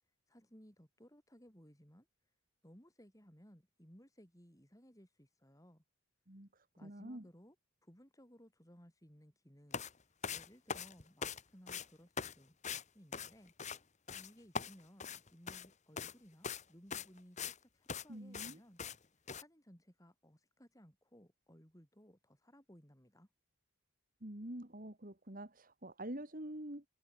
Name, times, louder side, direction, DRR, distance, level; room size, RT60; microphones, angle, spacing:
voice 1, 0.3-2.1 2.6-5.8 6.8-7.6 7.8-12.6 12.9-13.5 14.1-18.8 19.2-23.3, equal, 15° left, 8.0 m, -61 dB
voice 2, 6.3-7.3 18.1-18.6 24.2-26.9, right 1 dB, 40° right, 2.4 m, -46 dB
sound 1, 9.7-9.9 10.2-11.4 11.7-11.9 12.2-12.3 12.6-12.8 13.1-13.8 14.1-14.3 14.5-15.7 16.0-16.1 16.4-16.6 16.9-17.6 17.9-18.0 18.3-18.5 18.8-19.0 19.3-19.4, left 6 dB, 30° left, 1.3 m, -41 dB
head